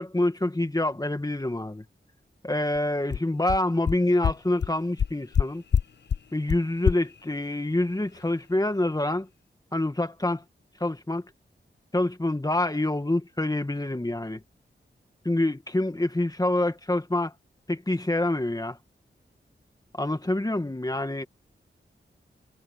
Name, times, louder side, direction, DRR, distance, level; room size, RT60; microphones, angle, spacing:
voice 1, 0.0-1.8 2.4-5.6 6.3-9.3 9.7-10.4 10.8-11.3 11.9-14.4 15.2-17.3 17.7-18.8 20.0-21.3, left 1 dB, 20° left, 2.1 m, -26 dB
sound 1, 2.8-2.9 3.1-3.2 3.5-3.6 3.9-4.0 4.2-4.3 4.6-4.7 5.0-5.4 5.7-5.8 6.1-6.2 6.5-6.6 6.9-7.0, left 7 dB, 65° left, 0.6 m, -23 dB
wide cardioid pair, 65°, 20 cm